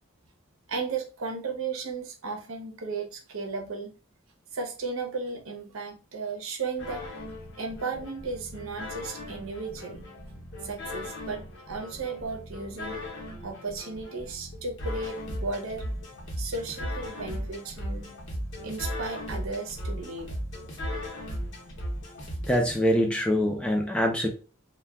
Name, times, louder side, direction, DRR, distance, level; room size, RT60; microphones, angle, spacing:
voice 1, 0.7-3.9 4.5-7.1 7.6-10.0 10.6-12.9 13.4-15.8 16.4-18.1 18.6-20.3, right 4 dB, 85° right, 0.7 m, -35 dB
sound 1, 6.8-22.8, equal, 60° left, 0.9 m, -37 dB
voice 2, 22.5-24.3, equal, 5° left, 0.4 m, -24 dB
2.3 x 2.2 x 3.4 m
head